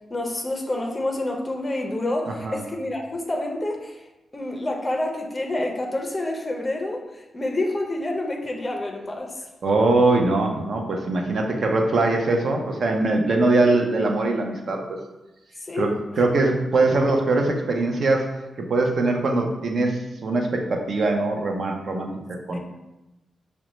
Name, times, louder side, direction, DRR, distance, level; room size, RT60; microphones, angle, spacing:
voice 1, 0.1-4.0 4.3-9.4 15.7-15.9 22.5-22.6, left 1 dB, 20° left, 2 dB, 0.5 m, -28 dB
voice 2, 9.6-15.0 15.8-22.1 22.5-22.6, right 2 dB, 55° right, 2 dB, 0.5 m, -22 dB
5.0 x 2.1 x 3.0 m, 0.98 s
wide cardioid pair, 150°, 0 cm